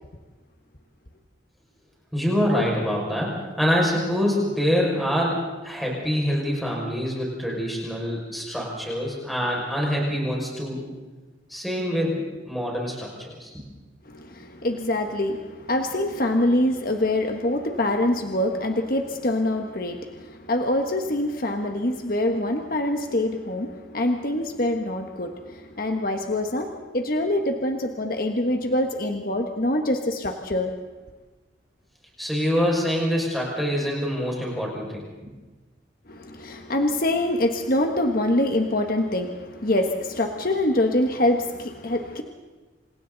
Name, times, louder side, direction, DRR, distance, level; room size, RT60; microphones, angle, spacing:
voice 1, 2.1-3.3 3.6-10.8 11.5-13.7 32.2-35.3, equal, ahead, -3 dB, 6.0 m, -25 dB
voice 2, 14.1-30.8 36.1-42.2, left 1 dB, 50° left, 4 dB, 1.4 m, -25 dB
28.0 x 27.0 x 4.1 m, 1.2 s
head